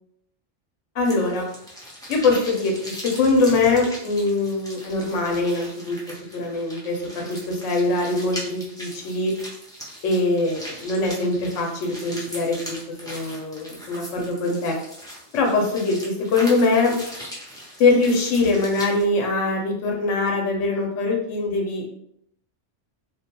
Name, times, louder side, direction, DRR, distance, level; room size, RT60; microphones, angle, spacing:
voice 1, 0.9-1.5 2.1-6.0 6.3-9.3 10.0-12.7 13.0-14.8 15.3-16.9 17.8-21.9, left 3 dB, 90° left, 0 dB, 1.0 m, -22 dB
sound 1, 1.0-19.0, equal, 5° left, 0.3 m, -39 dB
2.4 x 2.2 x 2.8 m, 0.73 s
omnidirectional pair, 1.2 m